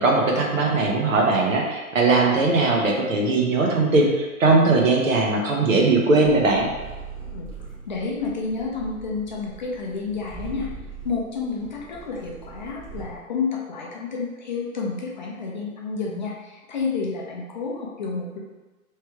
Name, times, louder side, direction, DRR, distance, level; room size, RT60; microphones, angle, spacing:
voice 1, 0.0-6.7, right 3 dB, 60° right, 0 dB, 1.1 m, -19 dB
sound 1, 6.2-13.0, right 4 dB, 25° right, 1.1 m, -41 dB
voice 2, 7.2-7.5 7.9-10.7 11.0-18.4, left 4 dB, 30° left, -2 dB, 0.6 m, -30 dB
3.3 x 3.2 x 4.5 m, 1.2 s
figure-of-eight pair, 135°, 44 cm